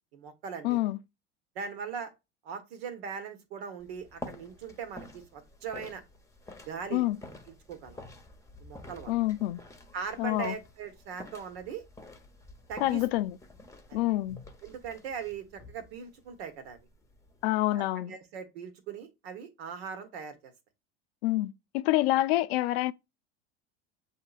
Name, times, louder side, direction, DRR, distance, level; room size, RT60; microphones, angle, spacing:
voice 1, 0.1-0.8 1.5-2.1 2.4-6.0 6.6-7.0 7.7-8.0 8.6-9.1 9.9-11.8 12.7-13.0 13.9-14.0 14.6-16.8 17.7-20.5, right 6 dB, 75° right, 1.3 m, -40 dB
voice 2, 0.6-1.0 6.9-7.2 9.1-9.6 10.2-10.5 12.8-13.4 13.9-14.4 17.4-18.1 21.2-22.9, left 16 dB, 75° left, 0.5 m, -27 dB
sound 1, 3.8-17.8, left 2 dB, 10° left, 0.9 m, -49 dB
7.4 x 2.8 x 2.4 m
hypercardioid pair, 90°, 32 cm